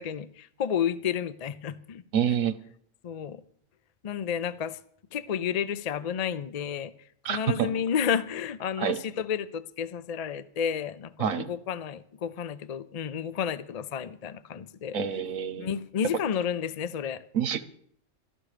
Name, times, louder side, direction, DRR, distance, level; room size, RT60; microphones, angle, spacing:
voice 1, 0.0-2.0 3.0-3.4 4.0-4.8 5.1-6.9 7.3-15.0 15.6-17.2, left 8 dB, 65° left, 0.4 m, -31 dB
voice 2, 2.1-2.6 7.2-7.7 8.8-9.0 11.2-11.5 14.9-15.7 17.3-17.6, right 8 dB, 75° right, 1.3 m, -27 dB
13.0 x 13.0 x 4.9 m
omnidirectional pair, 1.4 m